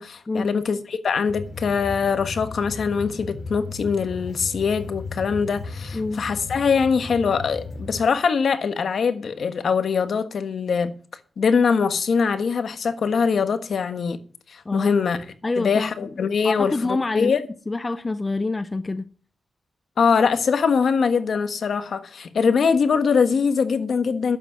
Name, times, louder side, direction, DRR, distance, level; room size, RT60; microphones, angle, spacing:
voice 1, 0.0-10.9 11.4-14.2 14.5-15.2 15.6-17.4 20.0-24.4, left 5 dB, 65° left, 1.4 m, -22 dB
sound 1, 1.3-8.1, left 3 dB, 45° left, 2.4 m, -36 dB
voice 2, 15.4-16.1 16.4-17.4 17.7-19.1 22.4-22.5, left 3 dB, 25° left, 0.6 m, -26 dB
11.5 x 8.1 x 6.2 m
cardioid pair, 95°, 0 cm